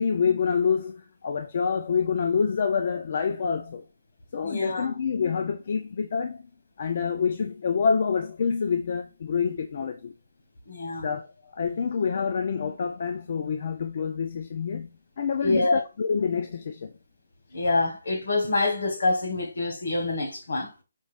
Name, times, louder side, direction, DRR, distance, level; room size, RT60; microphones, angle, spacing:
voice 1, 0.0-3.8 4.3-6.4 6.8-10.1 11.0-14.9 15.2-16.9, left 6 dB, 35° left, 0.3 m, -27 dB
voice 2, 4.4-4.9 10.7-11.1 15.4-15.8 17.5-20.7, left 2 dB, 65° left, 1.4 m, -26 dB
5.2 x 2.3 x 3.4 m
hypercardioid pair, 175°, 0 cm